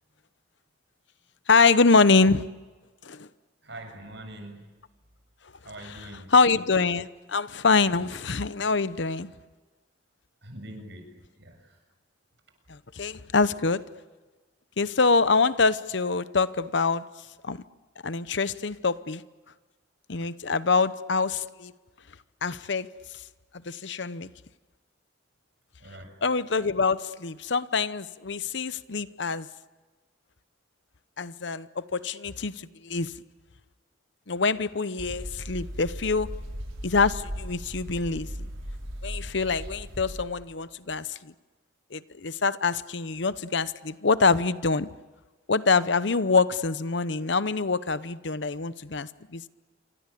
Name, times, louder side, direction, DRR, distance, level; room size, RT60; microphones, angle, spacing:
voice 1, 1.5-2.5 3.0-3.3 5.8-9.3 12.7-13.8 14.8-17.0 17.4-17.6 18.0-19.2 20.1-21.7 22.4-22.9 23.7-24.3 26.2-29.5 31.2-33.1 34.3-36.3 36.8-38.3 39.0-41.3 41.9-44.9 45.5-49.5, left 4 dB, 65° left, 15 dB, 0.8 m, -25 dB
voice 2, 3.6-4.6 5.6-6.3 10.4-11.1 11.4-11.8 25.8-26.2, right 1 dB, 60° right, 5 dB, 7.3 m, -43 dB
sound 1, 35.0-40.2, equal, 85° right, 6.5 m, -37 dB
27.5 x 25.5 x 8.5 m, 1.3 s
head